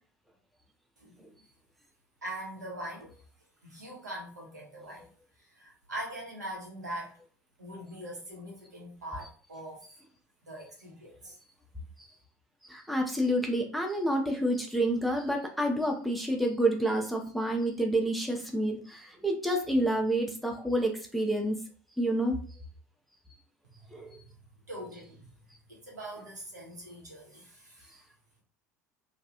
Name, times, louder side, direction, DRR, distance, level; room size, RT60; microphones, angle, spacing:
voice 1, 2.2-3.2 3.6-5.1 5.4-7.1 7.6-9.9 10.5-11.4 23.7-23.9 24.7-25.3 25.7-28.1, right 1 dB, 80° right, -2 dB, 1.0 m, -42 dB
voice 2, 12.7-21.6 22.0-22.4 23.9-24.2, right 1 dB, ahead, 1 dB, 0.5 m, -29 dB
2.3 x 2.3 x 2.8 m, 0.42 s
figure-of-eight pair, 75°, 9 cm